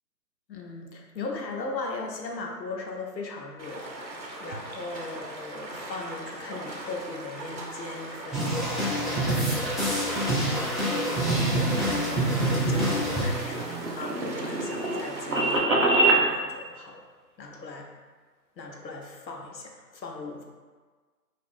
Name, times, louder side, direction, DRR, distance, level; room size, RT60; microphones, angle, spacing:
voice 1, 0.5-4.1 4.4-13.7 14.0-17.0 17.4-17.9 18.6-20.4, left 3 dB, 90° left, 1 dB, 0.7 m, -38 dB
Stream, 3.6-15.6, right 2 dB, 90° right, 0.7 m, -40 dB
sound 1, 8.3-14.3, right 1 dB, ahead, 0.3 m, -27 dB
sound 2, 13.2-16.2, right 2 dB, 50° right, 0.6 m, -24 dB
2.5 x 2.4 x 3.6 m, 1.4 s
figure-of-eight pair, 150°, 50 cm